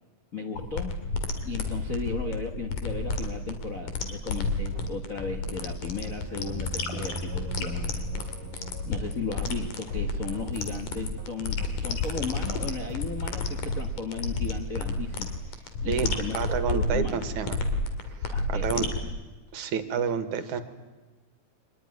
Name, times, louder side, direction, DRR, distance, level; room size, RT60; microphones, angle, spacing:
voice 1, 0.3-1.0 1.4-8.1 8.5-16.4 16.7-17.2 18.3-19.0, left 4 dB, 55° left, 6 dB, 0.9 m, -36 dB
sound 1, 0.6-19.0, left 3 dB, 80° left, 3.9 m, -31 dB
sound 2, 4.5-5.8 6.0-7.5 7.7-13.2, right 6 dB, 45° right, 2.0 m, -49 dB
sound 3, 6.0-10.5, right 4 dB, 90° right, 2.7 m, -43 dB
voice 2, 15.8-17.6 18.0-18.9 19.5-20.6, right 6 dB, 70° right, 10 dB, 2.9 m, -29 dB
24.5 x 20.5 x 9.6 m, 1.3 s
omnidirectional pair, 3.6 m